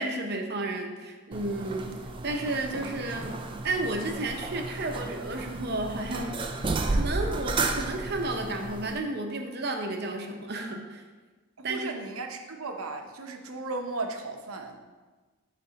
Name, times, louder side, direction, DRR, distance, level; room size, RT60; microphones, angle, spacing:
voice 1, 0.0-1.9 2.2-3.4 3.6-6.4 6.9-11.0 11.6-11.9, right 2 dB, 50° right, 3 dB, 0.9 m, -32 dB
sound 1, 1.3-9.0, right 3 dB, 25° right, 0.4 m, -33 dB
voice 2, 11.6-14.8, right 3 dB, 85° right, 4 dB, 0.9 m, -36 dB
9.5 x 3.4 x 5.2 m, 1.3 s
head